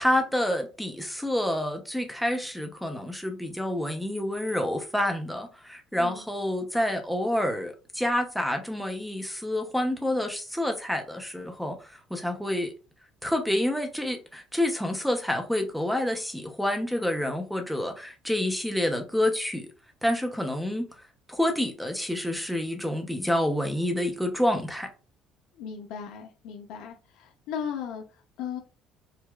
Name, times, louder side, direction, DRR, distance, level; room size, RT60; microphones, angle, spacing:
voice 1, 0.0-12.7 13.2-19.7 20.0-20.9 21.3-24.9, left 1 dB, ahead, 0.6 m, -28 dB
voice 2, 25.6-28.6, left 7 dB, 70° left, 0.5 m, -37 dB
4.6 x 2.3 x 2.3 m
cardioid pair, 170°, 0 cm